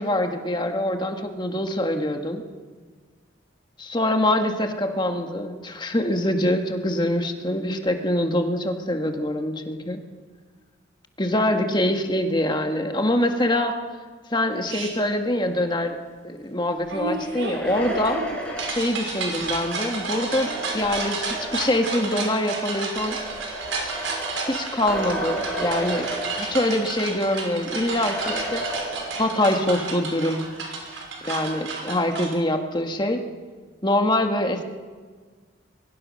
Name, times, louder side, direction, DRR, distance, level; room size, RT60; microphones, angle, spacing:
voice 1, 0.0-2.4 3.8-10.0 11.2-13.7 14.3-15.9 16.2-18.2 18.7-23.2 24.4-26.1 26.4-28.6 29.1-30.4 31.2-33.2 33.8-34.6, left 1 dB, 20° left, 5 dB, 1.6 m, -24 dB
sound 1, 14.7-14.9 16.9-32.3, right 3 dB, 80° right, 5.9 m, -32 dB
sound 2, 17.1-21.8 22.7-26.9 27.2-27.3 28.0-29.5, right 1 dB, 5° left, 5.9 m, -33 dB
25.5 x 22.5 x 6.4 m, 1.5 s
head